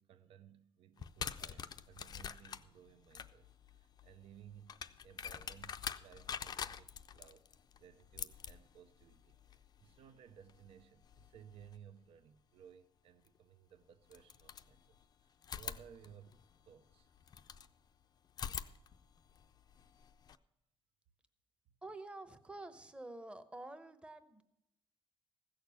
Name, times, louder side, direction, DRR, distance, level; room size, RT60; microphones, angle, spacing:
voice 1, 0.0-7.5 7.8-16.4 16.6-17.1, right 9 dB, 75° right, 0.7 m, -59 dB
sound 1, 1.0-11.8 13.3-13.4 14.1-15.1 15.4-17.7 18.3-20.4, left 7 dB, 45° left, 0.5 m, -47 dB
voice 2, 21.8-24.4, right 2 dB, 10° right, 0.8 m, -49 dB
15.0 x 6.6 x 6.9 m
cardioid pair, 130°, 10 cm